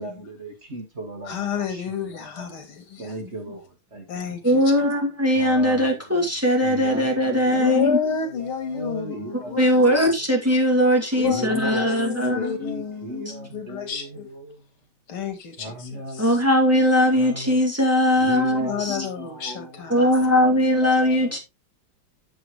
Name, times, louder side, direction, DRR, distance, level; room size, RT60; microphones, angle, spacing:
voice 1, 0.0-1.4 3.0-3.6 3.9-4.0 5.4-5.8 6.6-7.0 7.5-7.7 8.7-9.3 9.7-10.0 11.3-12.1 12.4-13.9 15.6-16.2 17.5-17.6 18.2-19.1 19.4-19.7 20.8-20.9, equal, 35° right, 2.1 m, -35 dB
voice 2, 1.2-3.2 4.1-4.6 7.5-9.8 11.2-14.3 15.1-16.4 18.7-20.1, left 7 dB, 90° left, 2.7 m, -30 dB
voice 3, 4.4-8.0 9.5-12.5 13.3-13.4 16.2-19.0 19.9-21.4, equal, 5° right, 2.5 m, -20 dB
9.2 x 7.3 x 3.1 m
omnidirectional pair, 2.3 m